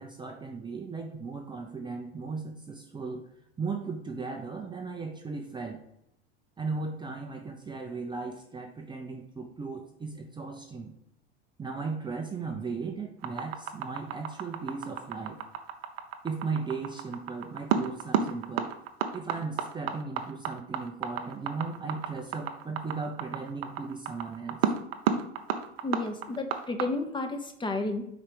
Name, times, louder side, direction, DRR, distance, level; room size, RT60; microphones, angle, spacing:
voice 1, 0.0-3.3 3.6-5.8 6.6-10.9 11.6-15.4 16.2-18.7 19.1-24.7, right 4 dB, 15° right, 2 dB, 0.6 m, -36 dB
sound 1, 13.2-26.8, right 7 dB, 75° right, 0.8 m, -31 dB
voice 2, 25.8-28.1, left 2 dB, 15° left, 5 dB, 0.9 m, -32 dB
4.9 x 4.3 x 4.8 m, 0.80 s
hypercardioid pair, 85°, 31 cm